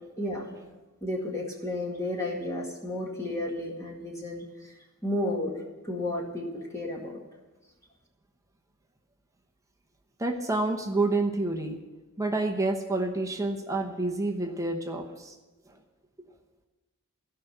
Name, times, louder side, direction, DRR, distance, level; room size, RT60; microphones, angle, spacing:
voice 1, 0.2-0.5 1.0-4.7 5.0-7.2, left 1 dB, 15° left, -2 dB, 2.1 m, -32 dB
voice 2, 10.2-11.8 12.2-15.3, right 2 dB, 15° right, 4 dB, 1.0 m, -28 dB
16.5 x 5.8 x 9.1 m, 1.1 s
head